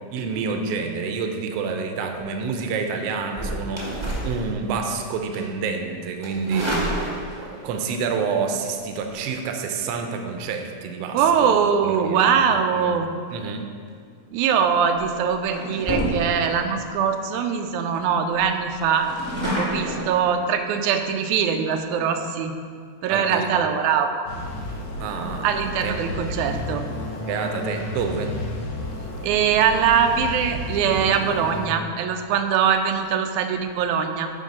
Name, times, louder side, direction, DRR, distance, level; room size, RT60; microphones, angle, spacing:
voice 1, 0.1-3.9 4.2-6.7 7.4-12.4 12.7-12.9 13.3-13.7 23.1-23.8 25.0-26.4 27.2-28.3, right 5 dB, 75° right, 4 dB, 1.5 m, -28 dB
sound 1, 3.3-4.9 5.3-5.6 6.2-7.6 8.9-9.1 14.2-14.4 14.9-15.1 15.5-16.6 17.1-17.2 17.4-17.5 17.9-18.0 18.3-20.1, right 1 dB, 25° right, 0.6 m, -29 dB
voice 2, 6.5-6.9 11.1-13.1 14.3-19.1 19.6-22.5 23.0-24.3 25.4-26.8 29.2-34.3, right 7 dB, 90° right, 6 dB, 2.0 m, -22 dB
sound 2, 24.3-31.7, left 1 dB, 75° left, 2.4 m, -32 dB
10.5 x 3.6 x 5.3 m, 2.1 s
omnidirectional pair, 3.3 m